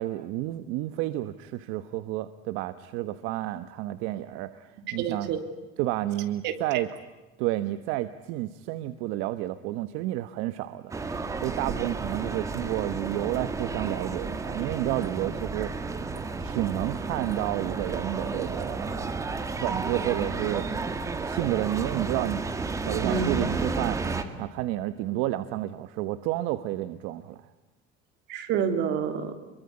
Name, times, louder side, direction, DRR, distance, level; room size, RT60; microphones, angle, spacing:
voice 1, 0.0-5.3 5.8-6.9 7.4-15.7 16.4-19.0 19.6-20.7 21.2-22.4 22.8-27.4, right 15 dB, 80° right, 11 dB, 1.2 m, -31 dB
voice 2, 5.0-5.4 6.4-6.8 23.0-23.3 28.3-29.3, right 7 dB, 60° right, 7 dB, 3.3 m, -28 dB
sound 1, 10.9-24.2, right 4 dB, 15° right, 1.9 m, -32 dB
26.0 x 23.0 x 9.6 m, 1.1 s
cardioid pair, 165°, 21 cm